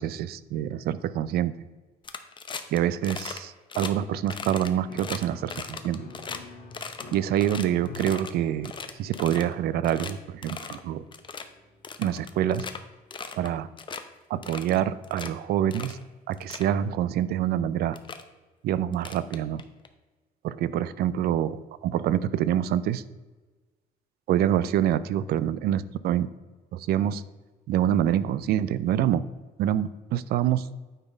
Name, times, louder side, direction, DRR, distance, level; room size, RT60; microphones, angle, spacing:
voice 1, 0.0-1.5 2.7-6.0 7.1-8.7 9.0-11.0 12.0-12.7 13.4-13.7 14.3-16.0 16.3-18.0 18.6-19.6 20.4-23.0 24.3-26.3 26.7-27.2 27.7-29.2 29.6-30.7, right 11 dB, 65° right, 16 dB, 0.4 m, -26 dB
sound 1, 2.0-2.8 3.0-3.4 3.7-3.9 4.3-6.4 6.7-8.3 8.6-9.5 9.8-10.1 10.4-10.8 11.1-11.4 11.8-12.8 13.1-13.5 13.8-14.0 14.4-15.3 15.7-16.0 16.3-16.7 17.5-17.6 17.9-18.2 18.9-19.9, left 5 dB, 30° left, 0.6 m, -38 dB
Piano, 4.9-13.3, left 3 dB, 70° left, 1.8 m, -48 dB
9.0 x 4.1 x 5.2 m, 1.2 s
cardioid pair, 110°, 17 cm